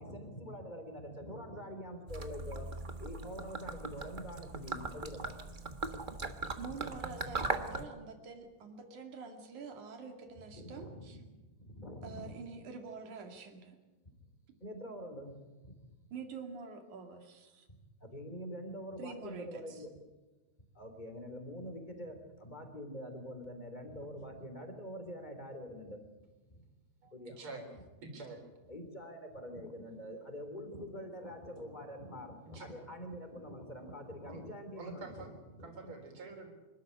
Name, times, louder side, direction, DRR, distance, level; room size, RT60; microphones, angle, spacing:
voice 1, 0.0-2.7 3.0-5.4 10.5-11.1 11.6-12.3 14.6-15.7 18.0-19.9 20.8-26.0 27.1-27.4 28.7-35.9, equal, 15° left, 5 dB, 3.3 m, -45 dB
Gurgling / Liquid, 2.1-7.9, right 3 dB, 65° right, 0.5 m, -39 dB
voice 2, 6.6-11.2 12.0-13.8 16.1-17.7 19.0-19.9, right 4 dB, 90° right, 5 dB, 3.7 m, -46 dB
voice 3, 27.0-27.6 28.0-28.4 32.5-32.7 34.2-34.4 34.8-35.3 35.6-36.5, right 3 dB, 45° right, 4 dB, 4.5 m, -46 dB
25.5 x 13.5 x 9.8 m, 1.2 s
omnidirectional pair, 3.3 m